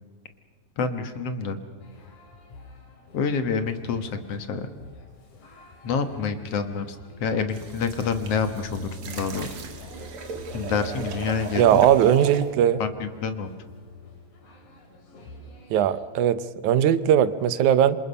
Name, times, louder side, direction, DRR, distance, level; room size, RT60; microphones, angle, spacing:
voice 1, 0.8-1.6 3.1-4.7 5.8-9.5 10.5-11.8 12.8-13.5, left 5 dB, 60° left, 8 dB, 2.2 m, -28 dB
sound 1, 1.8-16.1, left 4 dB, 85° left, 4.3 m, -48 dB
sound 2, 7.3-12.3, right 1 dB, 20° left, 3.5 m, -43 dB
sound 3, 7.5-12.5, right 5 dB, 50° right, 2.4 m, -37 dB
voice 2, 11.6-12.8 15.7-18.0, right 10 dB, 85° right, 14 dB, 2.3 m, -19 dB
27.5 x 26.0 x 5.6 m, 1.4 s
omnidirectional pair, 3.4 m